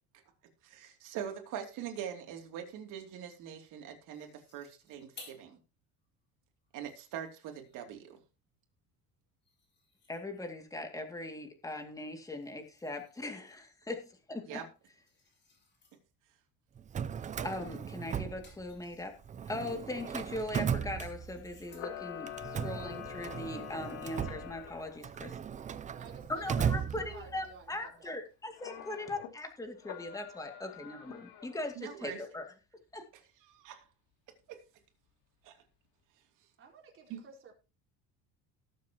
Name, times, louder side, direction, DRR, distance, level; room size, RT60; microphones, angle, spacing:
voice 1, 0.6-5.6 6.7-8.2 14.4-14.7 31.8-32.2 33.4-33.8 34.5-34.6 35.4-35.6 37.1-37.2, right 9 dB, 65° right, 2.9 m, -43 dB
sound 1, 4.1-5.5 6.0-6.1 6.6-8.0 9.4-10.7 12.2-13.4 14.6-16.0 17.4-17.7 18.0-19.3 20.1-22.1, left 3 dB, 30° left, 4.1 m, -59 dB
voice 2, 10.1-14.6 17.4-19.2 19.5-25.3 26.3-32.5 32.9-33.0, left 2 dB, 10° left, 2.3 m, -40 dB
Drawer open or close, 16.8-18.9 19.2-21.6 22.3-27.5, right 8 dB, 25° right, 0.4 m, -37 dB
Camera, 21.7-25.0 28.6-29.3 29.8-31.6, left 10 dB, 80° left, 2.7 m, -45 dB
voice 3, 25.9-28.2 36.6-37.5, right 5 dB, 40° right, 4.1 m, -53 dB
18.5 x 7.4 x 2.9 m
cardioid pair, 130°, 33 cm